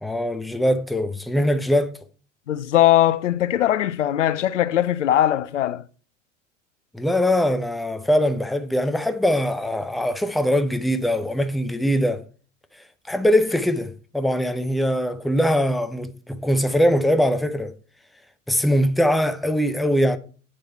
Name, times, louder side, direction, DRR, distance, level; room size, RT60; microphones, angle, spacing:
voice 1, 0.0-2.0 6.9-12.2 13.1-17.7 18.5-20.2, equal, ahead, 0.6 m, -22 dB
voice 2, 2.5-5.8, left 12 dB, 75° left, 0.5 m, -20 dB
8.7 x 7.7 x 4.5 m
figure-of-eight pair, 75°, 37 cm